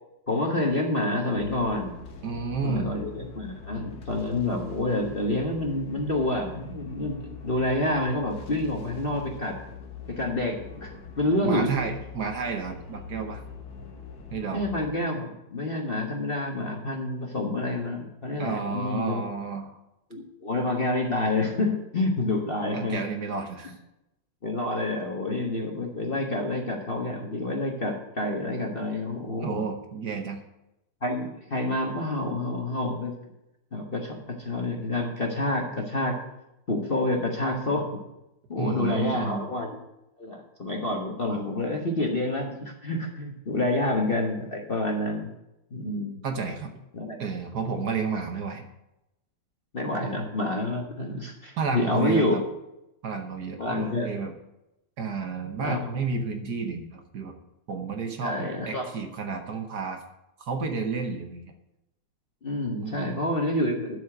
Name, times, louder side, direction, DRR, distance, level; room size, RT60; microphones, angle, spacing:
voice 1, 0.3-1.9 2.6-9.6 10.1-11.7 14.5-19.2 20.1-23.0 24.4-29.6 31.0-33.1 33.7-36.1 36.7-38.0 38.5-39.8 40.2-45.3 45.7-46.2 46.9-47.2 49.7-52.4 53.6-54.1 55.6-55.8 58.2-58.8 62.4-64.0, left 2 dB, 35° left, 0 dB, 1.2 m, -28 dB
sound 1, 1.3-14.9, left 5 dB, 55° left, 1.7 m, -43 dB
voice 2, 2.2-2.9 11.4-13.4 14.3-14.6 18.4-19.8 22.7-23.8 29.4-30.4 38.6-39.5 46.2-46.8 47.2-48.7 50.0-50.1 51.6-52.4 53.0-54.3 55.0-57.4 57.7-60.0 60.4-61.5 62.8-63.1, right 5 dB, 60° right, 4 dB, 1.3 m, -31 dB
12.0 x 5.0 x 7.7 m, 0.91 s
omnidirectional pair, 2.2 m